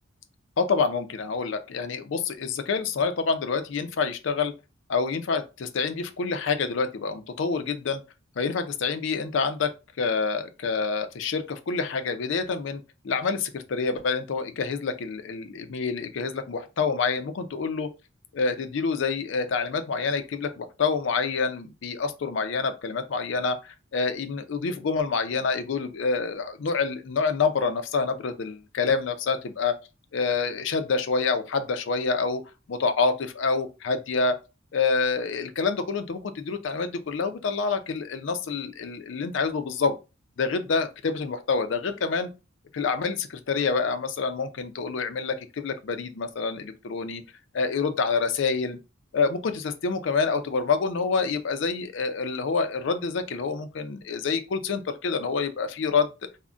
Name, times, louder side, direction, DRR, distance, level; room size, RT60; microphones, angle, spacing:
voice 1, 0.6-4.5 4.9-8.0 8.4-9.7 10.0-17.9 18.3-29.7 30.1-32.4 32.7-34.3 34.7-40.0 40.4-42.3 42.7-47.2 47.5-48.8 49.1-56.1, left 4 dB, 60° left, 0.4 m, -27 dB
3.6 x 2.1 x 2.4 m
head